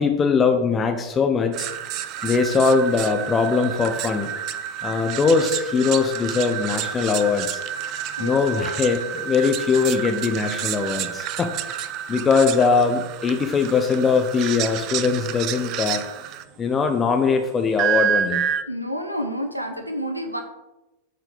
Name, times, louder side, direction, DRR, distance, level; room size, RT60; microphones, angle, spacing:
voice 1, 0.0-4.3 4.8-7.6 8.2-16.1 16.6-18.4, left 5 dB, 20° left, 6 dB, 0.6 m, -21 dB
sound 1, 1.5-16.4 17.8-18.6, right 10 dB, 40° right, 0.4 m, -29 dB
voice 2, 8.2-9.1 18.7-20.4, equal, 90° right, 5 dB, 0.8 m, -30 dB
7.7 x 4.5 x 3.9 m, 1.0 s
figure-of-eight pair, 90°, 0 cm